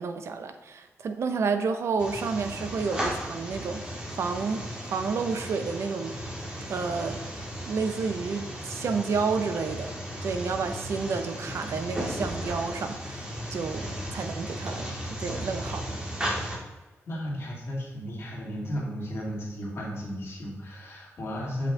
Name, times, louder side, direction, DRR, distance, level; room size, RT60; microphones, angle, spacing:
voice 1, 0.0-3.9 4.2-6.2 6.7-16.0, right 5 dB, 65° right, 8 dB, 0.6 m, -30 dB
sound 1, 2.0-16.6, equal, 15° right, 1.6 m, -35 dB
voice 2, 17.1-21.7, equal, 55° left, -3 dB, 2.2 m, -34 dB
7.6 x 5.3 x 3.7 m, 1.2 s
wide cardioid pair, 130°, 5 cm